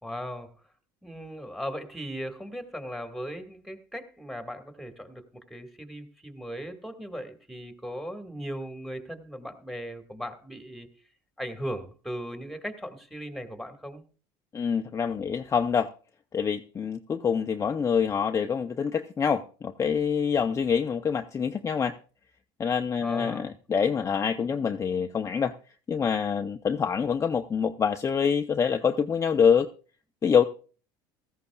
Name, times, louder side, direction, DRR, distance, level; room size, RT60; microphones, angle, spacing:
voice 1, 0.0-0.5 1.0-10.9 11.4-14.0 23.0-23.5, equal, ahead, 1.8 m, -38 dB
voice 2, 14.5-15.9 16.3-22.0 22.6-25.5 25.9-29.7 30.2-30.4, left 6 dB, 25° left, 0.6 m, -26 dB
17.0 x 14.0 x 2.3 m
supercardioid pair, 95°, 12 cm